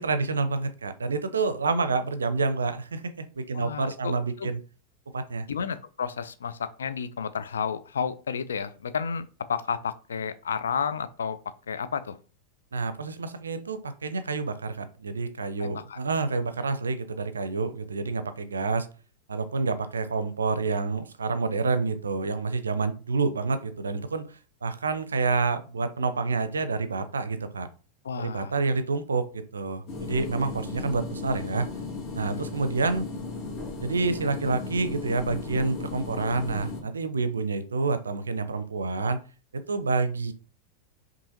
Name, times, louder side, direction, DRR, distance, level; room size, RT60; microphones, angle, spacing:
voice 1, 0.0-4.6 5.1-5.5 12.7-18.9 19.3-24.3 24.6-27.7 28.2-31.7 32.1-33.1 33.8-39.2 39.7-40.3, right 4 dB, 70° right, 11 dB, 0.5 m, -28 dB
voice 2, 3.5-4.5 5.5-11.4 11.7-12.2 15.6-16.0 28.0-28.5 32.3-32.5, left 6 dB, 70° left, 13 dB, 0.4 m, -31 dB
sound 1, 29.9-36.8, left 3 dB, 35° left, 1.7 m, -35 dB
5.4 x 2.7 x 2.7 m, 0.36 s
figure-of-eight pair, 90°, 0 cm